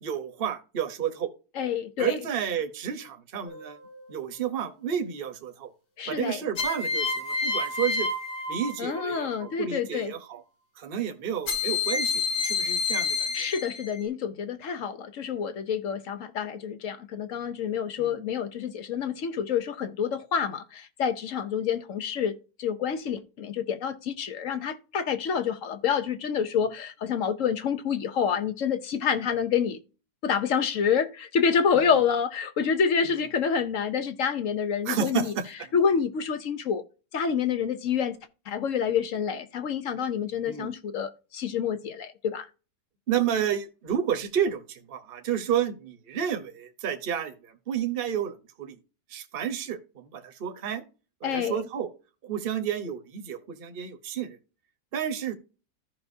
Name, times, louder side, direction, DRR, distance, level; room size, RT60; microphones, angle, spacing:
voice 1, 0.0-1.3 2.0-3.8 4.1-5.7 6.1-8.1 8.5-10.4 10.8-13.4 18.0-18.2 31.7-32.0 33.0-33.3 34.8-35.7 40.5-40.8 43.1-48.8 49.1-50.8 51.2-51.9 52.2-54.4 54.9-55.3, right 8 dB, 40° right, 1.1 m, -31 dB
voice 2, 1.6-2.2 6.0-6.4 8.8-10.1 13.3-29.8 30.2-35.3 35.7-36.8 37.1-38.2 38.5-42.5 51.2-51.6, left 7 dB, 60° left, 1.0 m, -28 dB
sound 1, 3.5-4.0 6.6-9.2 11.5-14.0, left 4 dB, 90° left, 2.3 m, -29 dB
14.0 x 5.7 x 2.7 m
omnidirectional pair, 1.8 m